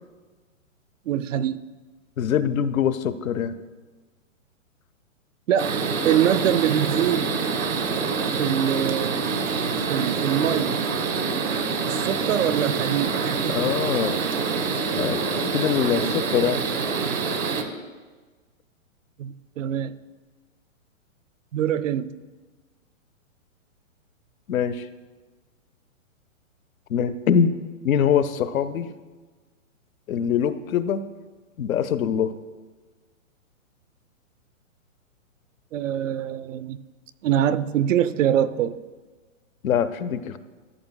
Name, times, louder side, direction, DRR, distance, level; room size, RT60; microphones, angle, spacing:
voice 1, 1.1-1.6 5.5-5.7 6.0-7.3 8.4-9.3 9.9-10.8 11.8-13.5 19.2-19.9 21.5-22.1 35.7-36.8 37.2-38.8, right 10 dB, 70° right, 15 dB, 0.5 m, -24 dB
voice 2, 2.2-3.6 13.5-14.2 14.9-16.6 24.5-24.9 26.9-27.5 27.8-28.9 30.1-31.0 31.6-32.3 39.6-40.4, left 8 dB, 85° left, 12 dB, 0.7 m, -23 dB
sound 1, 5.6-17.6, right 5 dB, 85° right, 1.1 m, -26 dB
14.0 x 6.9 x 2.2 m, 1.3 s
hypercardioid pair, 160°, 40 cm